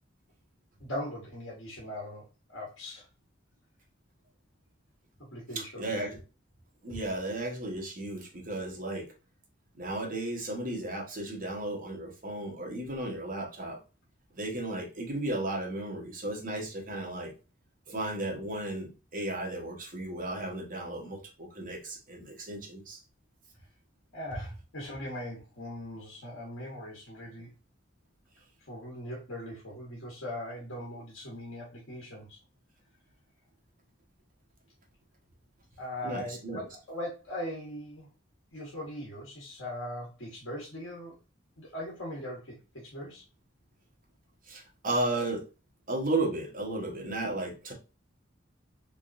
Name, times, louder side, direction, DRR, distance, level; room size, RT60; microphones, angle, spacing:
voice 1, 0.8-2.2 2.5-3.1 5.3-5.9 24.1-27.5 28.7-32.4 35.8-38.1 38.5-41.1 41.6-43.2, left 1 dB, 80° left, 1.3 m, -40 dB
voice 2, 5.5-6.2 6.8-9.1 9.7-13.8 14.3-17.3 17.9-23.0 36.0-36.6 44.5-45.4 45.9-47.7, right 2 dB, 45° right, 1.2 m, -34 dB
3.6 x 3.5 x 2.5 m
head